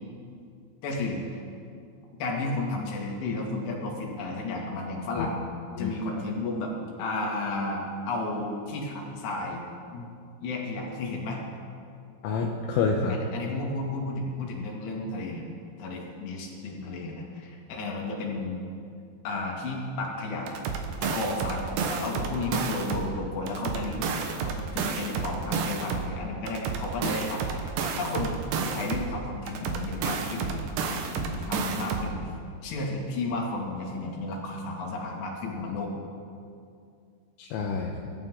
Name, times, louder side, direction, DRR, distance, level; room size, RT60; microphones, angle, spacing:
voice 1, 0.8-1.4 2.2-6.7 7.0-9.6 10.4-11.4 13.1-15.5 15.8-18.6 19.2-20.6 21.0-28.3 28.6-30.6 30.9-32.2 32.6-35.9, left 2 dB, 60° left, -1 dB, 4.1 m, -33 dB
voice 2, 5.8-6.2 9.9-10.1 12.2-13.2 37.4-38.1, left 5 dB, 80° left, 0 dB, 3.5 m, -29 dB
sound 1, 20.5-23.1 23.5-26.1 26.5-29.1 29.5-32.1, right 5 dB, 70° right, 2.8 m, -31 dB
26.0 x 13.0 x 3.8 m, 2.4 s
omnidirectional pair, 5.9 m